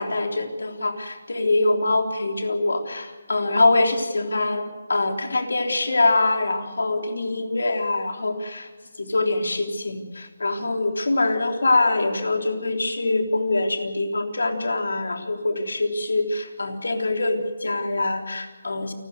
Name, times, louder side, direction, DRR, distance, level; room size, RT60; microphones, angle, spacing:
voice 1, 0.0-4.6 4.9-8.7 9.0-18.9, left 2 dB, 80° left, 4 dB, 3.5 m, -24 dB
28.5 x 13.5 x 8.1 m, 1.3 s
figure-of-eight pair, 155°, 0 cm